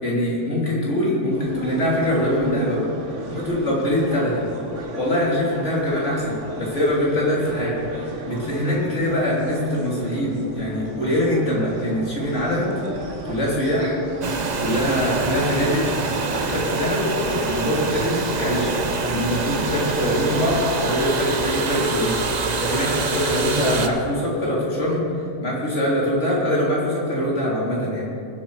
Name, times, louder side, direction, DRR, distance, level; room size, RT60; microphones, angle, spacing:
voice 1, 0.0-2.9 3.3-4.5 4.9-12.7 13.2-14.0 14.3-15.8 16.3-25.1 25.4-28.1, left 1 dB, 75° left, -5 dB, 3.5 m, -23 dB
sound 1, 1.3-20.7, right 2 dB, 80° right, 1.7 m, -37 dB
sound 2, 14.2-23.9, right 4 dB, 40° right, 0.9 m, -25 dB
19.5 x 8.2 x 4.8 m, 2.6 s
omnidirectional pair, 1.2 m